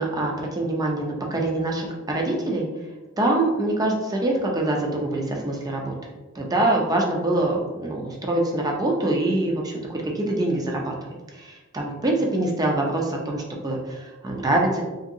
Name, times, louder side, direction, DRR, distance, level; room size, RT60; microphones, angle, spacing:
voice 1, 0.0-2.7 3.2-5.9 6.4-10.9 11.4-14.8, right 2 dB, 20° right, 0 dB, 0.4 m, -24 dB
2.7 x 2.6 x 2.6 m, 1.2 s
head